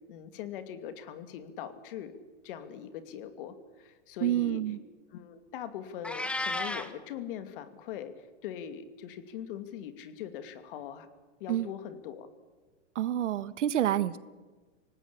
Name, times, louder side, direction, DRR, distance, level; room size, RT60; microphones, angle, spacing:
voice 1, 0.1-2.1 2.4-4.6 5.1-11.1 11.4-12.3, left 9 dB, 50° left, 10 dB, 2.7 m, -41 dB
voice 2, 4.2-4.8 11.5-11.7 12.9-14.3, right 11 dB, 85° right, 16 dB, 1.4 m, -28 dB
Meow, 6.0-6.9, left 2 dB, 5° left, 1.0 m, -33 dB
25.5 x 18.5 x 8.7 m, 1.4 s
supercardioid pair, 160°, 35 cm